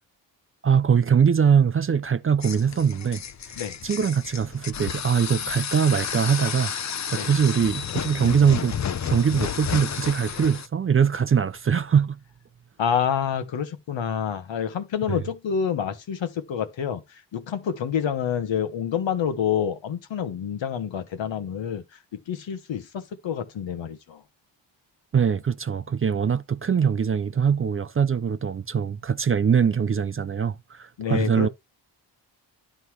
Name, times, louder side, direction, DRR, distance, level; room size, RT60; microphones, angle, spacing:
voice 1, 0.6-3.2 3.8-6.7 7.1-8.8 9.1-12.2 15.1-15.2 25.1-31.5, right 7 dB, 30° right, 0.5 m, -22 dB
sound 1, 2.4-10.7, left 8 dB, 40° left, 0.6 m, -31 dB
voice 2, 12.8-17.0 17.3-21.8 22.1-24.2 31.0-31.5, left 8 dB, 80° left, 1.4 m, -28 dB
11.5 x 4.0 x 4.8 m
cardioid pair, 110°, 45 cm